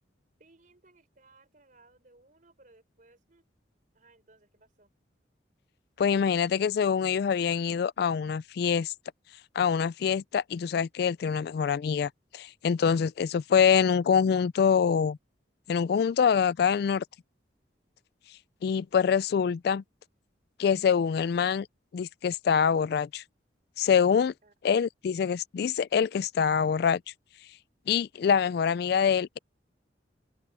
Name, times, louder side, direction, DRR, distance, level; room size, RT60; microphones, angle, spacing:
voice 1, 0.4-3.5 3.9-4.9 24.4-24.5 28.5-28.6, right 2 dB, 45° right, 4.3 m, -61 dB
voice 2, 6.0-8.9 9.6-15.2 15.7-17.0 18.6-19.8 20.6-21.7 21.9-23.2 23.8-24.3 24.6-27.0 27.9-29.4, left 7 dB, 60° left, 0.3 m, -25 dB
head